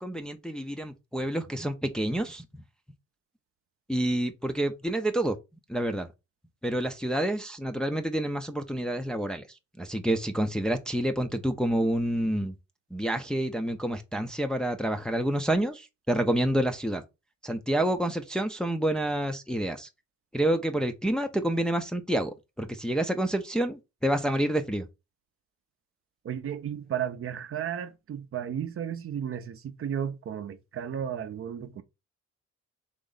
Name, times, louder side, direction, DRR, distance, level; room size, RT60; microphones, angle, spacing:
voice 1, 0.0-2.4 3.9-5.4 5.7-6.1 6.6-9.4 9.8-12.5 12.9-17.0 17.4-19.9 20.3-24.8, right 1 dB, 5° left, 0.5 m, -28 dB
voice 2, 26.2-31.8, right 9 dB, 45° right, 0.6 m, -34 dB
3.8 x 3.0 x 3.8 m
cardioid pair, 90°, 30 cm